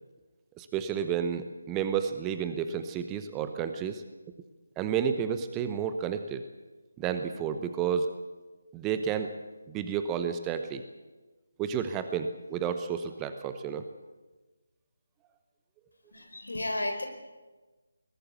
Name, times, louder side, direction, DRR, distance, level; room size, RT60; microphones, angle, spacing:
voice 1, 0.6-4.0 4.8-6.4 7.0-8.1 8.7-9.3 9.7-10.8 11.6-13.9, right 7 dB, 10° right, 9 dB, 0.9 m, -31 dB
voice 2, 16.1-17.1, left 1 dB, 65° left, 7 dB, 4.5 m, -33 dB
21.5 x 19.0 x 8.3 m, 1.3 s
figure-of-eight pair, 155°, 0 cm